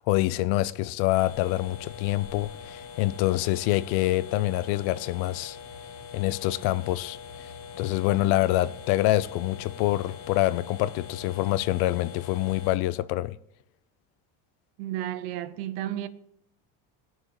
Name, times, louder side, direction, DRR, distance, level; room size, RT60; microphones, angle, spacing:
voice 1, 0.0-5.6 6.1-7.5 7.8-13.4, left 16 dB, 70° left, 0.6 m, -26 dB
sound 1, 1.1-12.8, left 6 dB, 35° left, 1.0 m, -43 dB
voice 2, 14.8-16.1, right 12 dB, 90° right, 0.9 m, -32 dB
20.0 x 6.8 x 3.0 m
cardioid pair, 150°, 41 cm